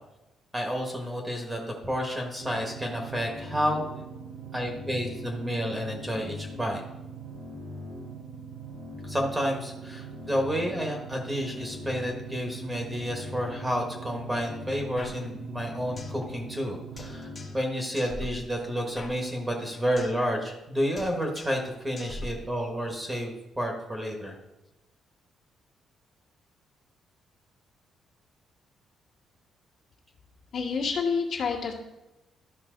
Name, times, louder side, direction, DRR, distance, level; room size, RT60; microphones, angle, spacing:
voice 1, 0.5-3.8 4.5-6.8 9.0-24.4, equal, 10° right, 2 dB, 1.4 m, -30 dB
sound 1, 2.4-17.5, right 1 dB, 85° right, 2.7 m, -41 dB
sound 2, 15.0-16.2 16.5-16.6 17.0-17.7 18.0-20.2 20.5-20.7 21.0-21.7 22.0-23.0, left 2 dB, 25° left, 1.0 m, -43 dB
voice 2, 30.5-31.7, left 5 dB, 55° left, -2 dB, 1.8 m, -28 dB
12.5 x 5.8 x 3.9 m, 0.97 s
cardioid pair, 155°, 0 cm